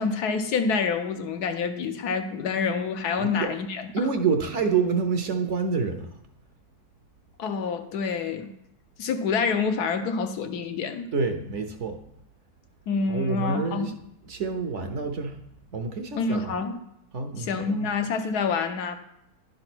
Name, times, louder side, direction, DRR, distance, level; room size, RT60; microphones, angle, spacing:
voice 1, 0.0-4.1 7.4-8.5 9.0-11.1 12.9-13.9 16.2-16.8 17.4-19.0, left 5 dB, 80° left, 6 dB, 1.3 m, -27 dB
voice 2, 3.2-3.5 3.9-6.1 11.1-12.0 13.1-13.9 14.2-15.4 15.7-16.5 17.1-17.9, right 5 dB, 60° right, 6 dB, 0.9 m, -27 dB
10.5 x 3.9 x 6.0 m, 0.80 s
omnidirectional pair, 1.7 m